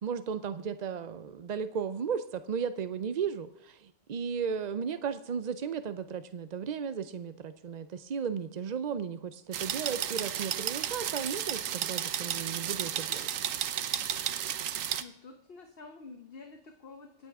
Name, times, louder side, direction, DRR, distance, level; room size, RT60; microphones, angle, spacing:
voice 1, 0.0-13.3, right 6 dB, 60° right, 11 dB, 0.4 m, -35 dB
sound 1, 9.5-15.0, right 10 dB, 80° right, 1.1 m, -33 dB
voice 2, 15.0-17.3, left 4 dB, 50° left, 5 dB, 1.2 m, -49 dB
25.5 x 9.0 x 3.6 m, 0.76 s
omnidirectional pair, 1.4 m